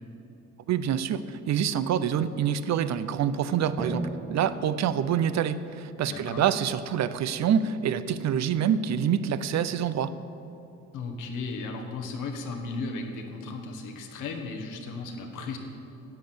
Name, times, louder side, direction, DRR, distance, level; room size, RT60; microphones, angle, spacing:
voice 1, 0.7-10.1, right 8 dB, 65° right, 14 dB, 0.7 m, -26 dB
Drum, 3.8-6.3, right 2 dB, 20° right, 1.6 m, -38 dB
voice 2, 6.1-6.4 10.9-15.6, left 3 dB, 85° left, 3 dB, 1.6 m, -35 dB
10.5 x 8.7 x 7.9 m, 2.9 s
cardioid pair, 90°, 30 cm